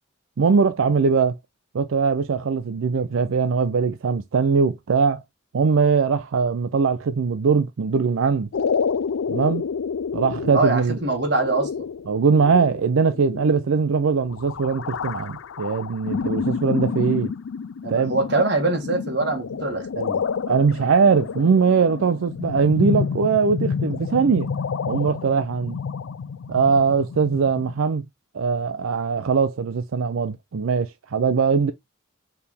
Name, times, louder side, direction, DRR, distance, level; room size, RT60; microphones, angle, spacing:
voice 1, 0.4-1.3 1.7-5.2 5.5-8.5 9.3-9.6 10.1-11.0 12.1-17.3 17.9-18.1 20.5-24.5 24.9-25.8 26.5-28.0 28.3-31.7, right 5 dB, 85° right, 0.4 m, -21 dB
sound 1, 8.5-27.7, left 6 dB, 80° left, 0.4 m, -29 dB
voice 2, 10.5-11.9 17.8-20.2, right 2 dB, 55° right, 1.8 m, -23 dB
4.7 x 3.4 x 3.4 m
head